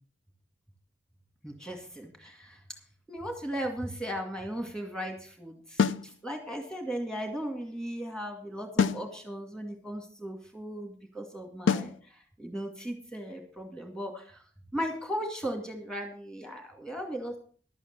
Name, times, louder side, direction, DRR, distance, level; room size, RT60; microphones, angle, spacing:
voice 1, 1.4-2.6 3.1-14.4 14.7-17.4, equal, 5° left, 3 dB, 2.1 m, -37 dB
sound 1, 5.8-6.1 8.8-9.1 11.7-12.0, left 6 dB, 90° left, 0.5 m, -25 dB
12.0 x 8.5 x 6.7 m, 0.43 s
head